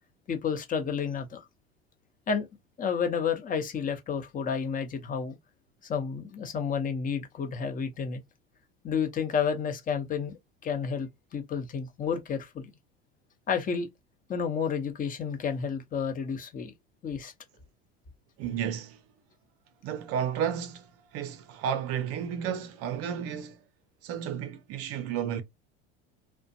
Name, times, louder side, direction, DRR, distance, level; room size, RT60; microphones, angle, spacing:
voice 1, 0.3-1.4 2.3-2.5 2.8-5.4 5.8-8.2 8.8-10.3 10.6-12.7 13.5-13.9 14.3-16.7 17.0-17.3, left 6 dB, 25° left, 0.8 m, -30 dB
voice 2, 18.4-19.0 19.8-23.6 24.0-25.4, right 8 dB, 50° right, 0.6 m, -32 dB
2.4 x 2.2 x 2.7 m
hypercardioid pair, 90°, 31 cm